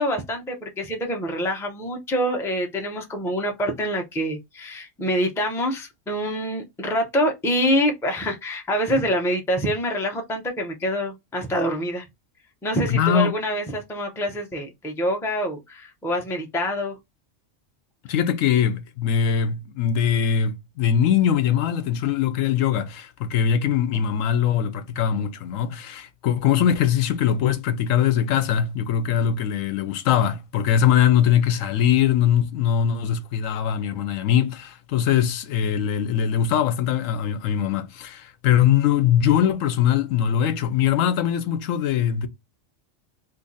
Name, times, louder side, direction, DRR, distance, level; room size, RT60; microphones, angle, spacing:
voice 1, 0.0-12.1 12.6-16.9, equal, 5° left, 0.5 m, -26 dB
voice 2, 12.9-13.3 18.1-42.3, left 9 dB, 80° left, 1.0 m, -21 dB
2.7 x 2.5 x 3.9 m
omnidirectional pair, 1.3 m